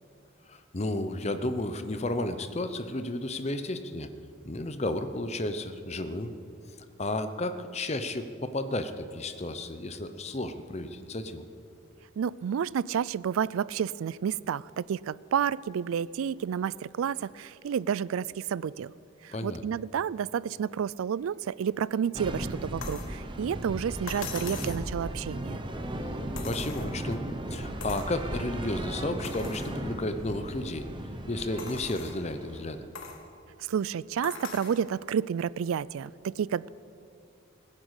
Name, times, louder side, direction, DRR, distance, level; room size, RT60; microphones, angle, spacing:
voice 1, 0.5-4.1 4.5-6.3 7.0-11.4 19.3-19.6 26.0-26.2 26.4-27.2 27.5-30.9 31.3-32.8, left 1 dB, 30° left, 10 dB, 0.8 m, -32 dB
voice 2, 12.2-18.9 19.2-25.6 33.6-36.7, right 8 dB, 90° right, 21 dB, 0.3 m, -30 dB
sound 1, 22.1-32.8, right 1 dB, 25° right, 1.0 m, -36 dB
sound 2, 22.8-23.1 24.1-24.9 26.4-27.2 27.8-28.1 28.7-28.8 29.2-29.7 30.4-30.5 31.6-32.2 33.0-33.2 34.2-34.8 36.1-36.2, left 5 dB, 85° left, 1.7 m, -41 dB
17.0 x 9.9 x 8.1 m, 2.6 s
head